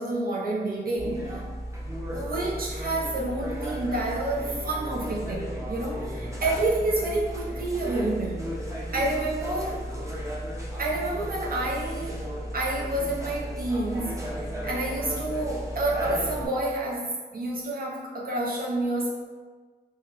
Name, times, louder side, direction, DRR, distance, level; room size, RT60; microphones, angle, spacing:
voice 1, 0.0-1.4 2.1-8.4 8.9-9.9 10.2-10.3 10.8-12.3 12.5-19.1, right 2 dB, 55° right, -3 dB, 0.4 m, -29 dB
sound 1, 1.0-16.5, equal, 15° right, 0.6 m, -34 dB
3.8 x 2.0 x 2.8 m, 1.4 s
wide cardioid pair, 90°, 18 cm